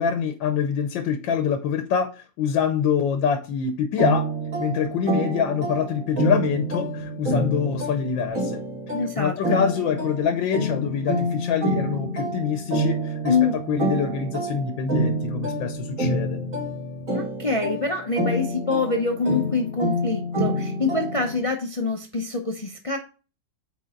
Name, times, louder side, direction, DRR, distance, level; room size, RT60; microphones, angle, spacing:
voice 1, 0.0-4.3 4.6-8.6 9.2-16.4, left 7 dB, 85° left, 1.5 m, -25 dB
sound 1, 4.0-21.4, right 1 dB, 45° right, 2.7 m, -27 dB
voice 2, 8.9-9.6 13.3-13.5 17.1-23.0, left 3 dB, 60° left, 0.3 m, -25 dB
8.4 x 4.0 x 3.7 m
omnidirectional pair, 2.0 m